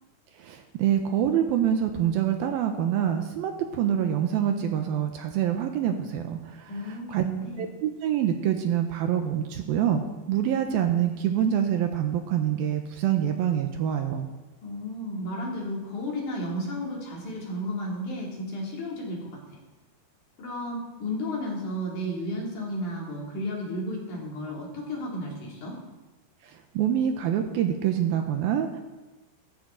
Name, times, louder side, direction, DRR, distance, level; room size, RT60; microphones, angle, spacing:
voice 1, 0.4-7.2 7.6-10.0 10.3-14.3 26.4-28.8, right 9 dB, 75° right, 5 dB, 2.5 m, -26 dB
voice 2, 6.7-7.6 14.6-19.2 19.5-19.6 20.4-25.8, equal, 50° left, -3 dB, 4.3 m, -33 dB
17.5 x 14.5 x 3.9 m, 1.1 s
omnidirectional pair, 4.7 m